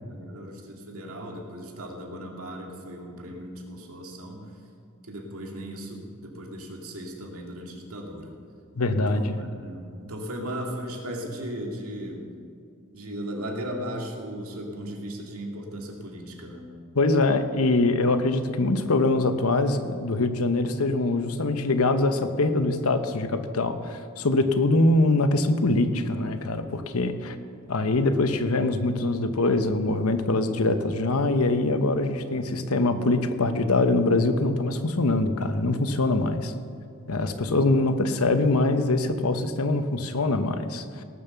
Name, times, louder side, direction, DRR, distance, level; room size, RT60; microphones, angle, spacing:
voice 1, 0.1-4.4 5.0-8.3 8.8-12.3 12.9-16.7, equal, 85° right, 1 dB, 2.3 m, -37 dB
voice 2, 8.8-9.4 16.9-27.4 27.7-36.5 37.1-41.0, left 2 dB, 85° left, 9 dB, 1.0 m, -23 dB
18.5 x 7.1 x 6.8 m, 2.4 s
head